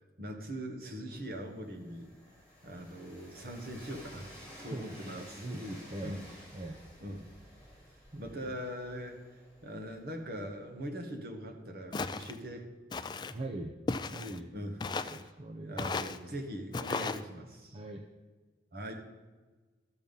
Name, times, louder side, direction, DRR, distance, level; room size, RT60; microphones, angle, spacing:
voice 1, 0.2-2.1 2.6-4.3 4.6-5.4 6.0-6.3 7.0-7.3 8.2-9.3 9.6-12.6 14.5-14.8 15.6-17.8 18.7-19.1, equal, 55° right, 3 dB, 1.4 m, -41 dB
Train, 1.1-10.9, equal, 15° right, 3.4 m, -54 dB
voice 2, 4.7-6.2 6.5-6.8 8.1-8.2 13.3-13.7 14.1-14.5 15.1-15.8 17.7-18.0, right 1 dB, 35° right, 3 dB, 0.6 m, -41 dB
Walk footsteps, 11.9-12.4 12.9-13.3 13.9-14.4 14.8-15.2 15.8-16.2 16.7-17.2, left 3 dB, 25° left, 0.3 m, -35 dB
12.5 x 7.2 x 5.4 m, 1.3 s
head